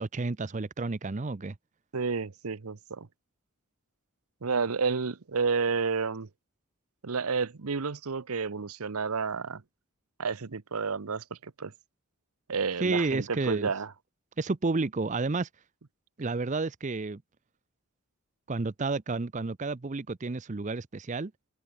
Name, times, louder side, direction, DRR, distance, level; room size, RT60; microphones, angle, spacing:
voice 1, 0.0-1.5 12.8-13.7 14.4-15.5 16.2-17.2 18.5-21.3, right 3 dB, 35° right, 0.6 m, -30 dB
voice 2, 1.9-3.1 4.4-6.3 7.0-9.6 10.2-11.7 12.5-13.9, right 5 dB, 85° right, 0.9 m, -30 dB
head